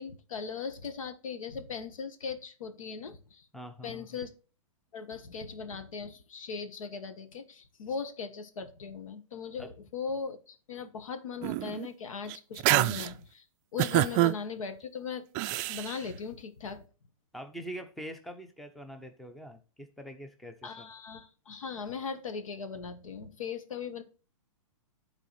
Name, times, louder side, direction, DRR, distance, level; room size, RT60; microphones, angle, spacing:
voice 1, 0.0-3.5 3.8-4.3 4.9-13.4 13.7-15.3 15.7-16.8 20.6-24.0, left 5 dB, 85° left, 9 dB, 1.4 m, -39 dB
voice 2, 3.5-4.2 9.6-9.7 17.3-20.9, equal, ahead, 6 dB, 0.7 m, -44 dB
sound 1, 11.4-11.9 12.3-13.1 13.8-14.3 15.4-15.9, right 16 dB, 35° right, 0.4 m, -26 dB
10.5 x 4.1 x 4.2 m, 0.35 s
hypercardioid pair, 140°, 17 cm